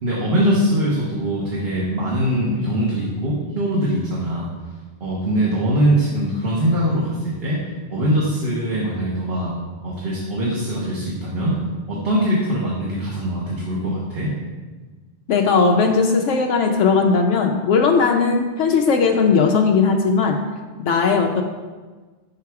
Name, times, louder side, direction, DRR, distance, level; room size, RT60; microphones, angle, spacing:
voice 1, 0.0-4.5 5.0-7.6 7.9-9.5 9.8-11.6 11.9-14.3, equal, 55° right, -5 dB, 1.3 m, -22 dB
voice 2, 15.3-20.4 20.8-21.4, left 5 dB, 85° left, 3 dB, 0.9 m, -18 dB
5.8 x 5.4 x 4.7 m, 1.3 s
omnidirectional pair, 1.2 m